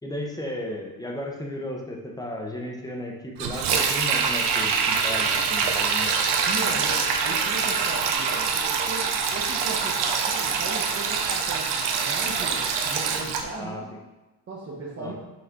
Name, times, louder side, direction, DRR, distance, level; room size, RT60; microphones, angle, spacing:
voice 1, 0.0-6.1 13.6-13.8 15.0-15.1, left 1 dB, 10° left, 0 dB, 0.8 m, -34 dB
Sink (filling or washing), 3.4-13.4, right 5 dB, 80° right, 0.9 m, -25 dB
voice 2, 6.4-11.7 12.0-13.9 14.5-15.1, right 3 dB, 35° right, -6 dB, 1.1 m, -37 dB
6.0 x 4.2 x 3.7 m, 1.1 s
cardioid pair, 135°, 40 cm